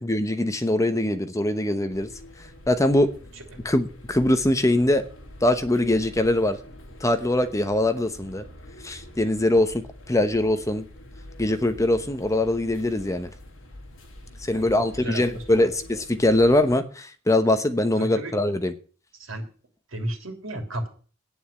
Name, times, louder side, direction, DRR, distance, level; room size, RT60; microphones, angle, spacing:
voice 1, 0.0-2.1 2.7-3.1 3.6-5.0 5.4-6.6 7.0-8.4 8.8-9.8 10.1-10.8 11.4-13.3 14.4-18.7, left 1 dB, 15° left, 1.0 m, -22 dB
sound 1, 1.9-16.8, left 1 dB, 70° left, 2.9 m, -45 dB
voice 2, 15.0-15.7 18.0-18.3 19.2-19.4 19.9-20.9, right 1 dB, 80° right, 3.1 m, -33 dB
9.5 x 7.1 x 8.6 m
head